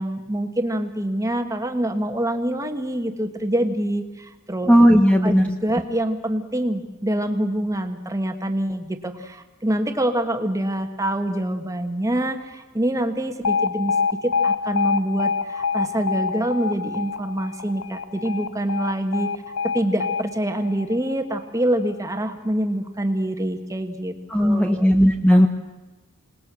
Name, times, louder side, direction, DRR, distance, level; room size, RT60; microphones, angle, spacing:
voice 1, 0.0-4.7 5.2-13.9 14.2-24.9, right 1 dB, 15° right, 6 dB, 1.6 m, -25 dB
voice 2, 4.7-5.5 24.3-25.5, equal, 5° left, 4 dB, 1.1 m, -15 dB
Alarm, 13.4-21.5, left 5 dB, 75° left, 0.8 m, -26 dB
27.5 x 19.5 x 6.3 m, 1.2 s
head